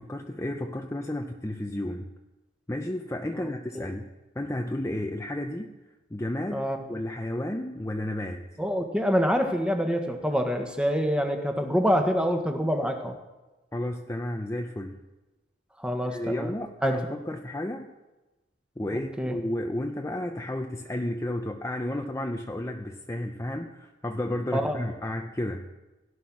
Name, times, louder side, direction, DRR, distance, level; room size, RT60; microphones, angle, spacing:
voice 1, 0.0-2.1 2.7-4.1 4.4-5.7 6.1-8.5 13.7-15.0 16.0-17.9 18.8-25.7, left 1 dB, 15° left, 3 dB, 0.8 m, -32 dB
voice 2, 8.6-13.1 15.8-16.5 16.8-17.0 18.9-19.4 24.5-24.8, equal, 5° right, 4 dB, 1.5 m, -26 dB
17.0 x 11.0 x 6.2 m, 1.1 s
head